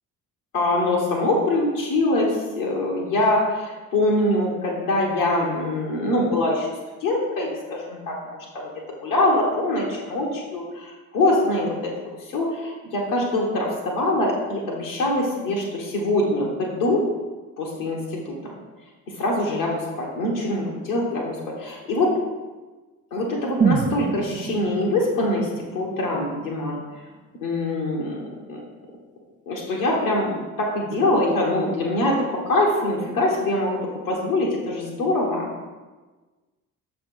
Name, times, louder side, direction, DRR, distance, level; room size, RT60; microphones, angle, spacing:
voice 1, 0.5-6.7 7.0-8.7 9.0-11.9 12.3-17.0 17.6-18.0 18.2-18.5 19.2-22.1 23.1-26.8 27.4-28.2 28.5-28.6 29.5-32.2 32.5-33.8 34.1-35.5, left 1 dB, 75° left, -4 dB, 1.3 m, -23 dB
sound 1, 23.6-27.6 27.9-28.0, right 6 dB, 20° right, 0.5 m, -28 dB
6.6 x 3.3 x 6.0 m, 1.3 s
figure-of-eight pair, 50°, 42 cm